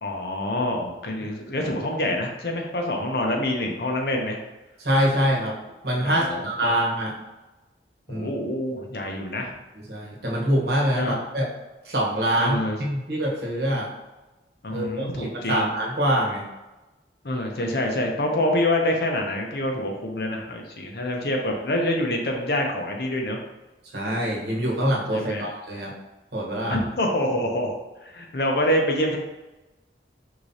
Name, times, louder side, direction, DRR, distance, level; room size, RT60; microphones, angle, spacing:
voice 1, 0.0-4.4 6.0-6.7 8.1-9.5 10.9-11.2 12.3-12.8 14.6-15.7 17.2-23.4 25.1-25.5 26.7-27.8 28.0-29.2, left 1 dB, 55° left, 2 dB, 0.7 m, -26 dB
voice 2, 4.8-5.5 5.8-7.1 8.1-8.3 9.9-11.5 11.8-13.9 14.7-16.4 23.9-25.9 26.3-26.8, equal, 60° right, -2 dB, 1.1 m, -24 dB
4.8 x 3.7 x 2.7 m, 1.1 s
head